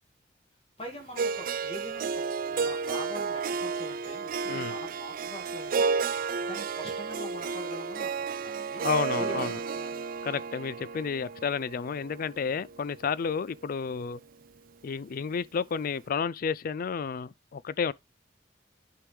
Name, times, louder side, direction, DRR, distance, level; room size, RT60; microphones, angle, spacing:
voice 1, 0.8-6.1 6.4-8.8 9.2-10.0, equal, 30° left, 2.2 m, -44 dB
Harp, 1.2-13.3, right 5 dB, 50° right, 0.4 m, -32 dB
voice 2, 8.8-9.6 10.2-14.2 14.8-17.9, left 6 dB, 50° left, 0.4 m, -31 dB
11.0 x 4.7 x 3.4 m
head